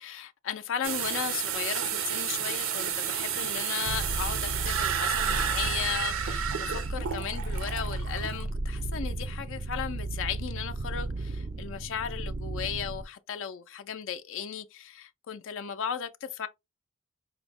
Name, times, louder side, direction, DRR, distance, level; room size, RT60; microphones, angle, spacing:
voice 1, 0.0-16.5, left 8 dB, 65° left, 0.4 m, -36 dB
sound 1, 0.8-8.4, right 8 dB, 75° right, 0.6 m, -31 dB
sound 2, 3.9-13.0, right 2 dB, 35° right, 0.4 m, -34 dB
4.9 x 2.0 x 3.4 m
head